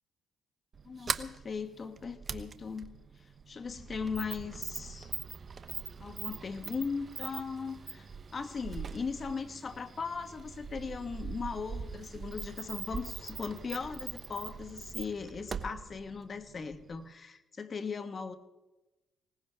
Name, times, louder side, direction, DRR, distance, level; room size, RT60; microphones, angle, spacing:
Sliding door, 0.7-17.1, right 5 dB, 40° right, 0.9 m, -42 dB
voice 1, 0.8-2.9 3.2-5.1 6.0-18.3, left 5 dB, 40° left, 9 dB, 1.4 m, -38 dB
20.5 x 19.0 x 3.5 m, 1.0 s
cardioid pair, 90°, 0 cm